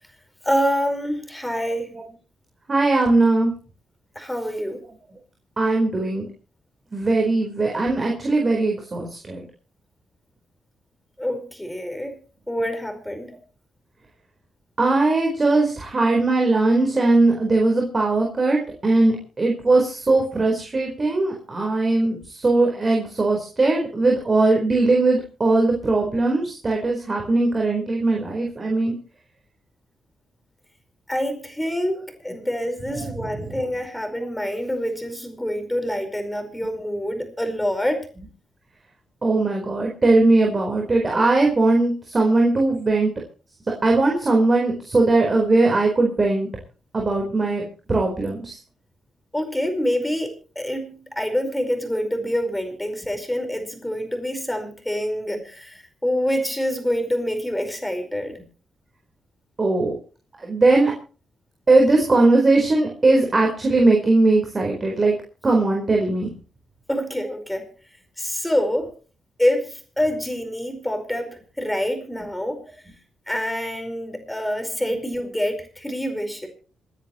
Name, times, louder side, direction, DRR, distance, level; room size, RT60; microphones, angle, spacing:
voice 1, 0.4-1.9 4.1-4.8 11.2-12.2 12.5-13.3 31.1-38.1 49.3-58.4 66.9-67.6 68.2-68.9 69.4-72.6 73.3-76.5, equal, 10° left, 6 dB, 5.0 m, -26 dB
voice 2, 2.7-3.5 5.6-6.2 6.9-9.4 14.8-29.0 33.0-33.6 39.2-43.1 43.8-46.5 46.9-48.6 59.6-59.9 60.4-60.9 61.7-65.1 65.4-66.3, right 2 dB, 35° right, 0 dB, 4.4 m, -19 dB
27.0 x 10.5 x 3.1 m, 0.37 s
cardioid pair, 80°, 0 cm